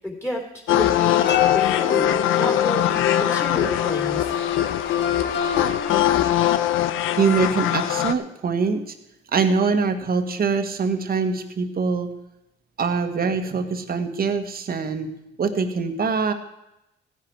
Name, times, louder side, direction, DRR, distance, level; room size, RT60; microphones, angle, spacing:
voice 1, 0.0-4.3, left 1 dB, 10° left, 1 dB, 3.7 m, -31 dB
sound 1, 0.7-8.1, left 12 dB, 90° left, 0.7 m, -21 dB
sound 2, 1.1-6.3, left 8 dB, 65° left, 1.5 m, -29 dB
voice 2, 7.2-8.9 9.3-12.1 12.8-15.1 15.4-16.3, right 5 dB, 50° right, 7 dB, 1.6 m, -23 dB
15.5 x 10.5 x 4.7 m, 0.88 s
cardioid pair, 90°, 20 cm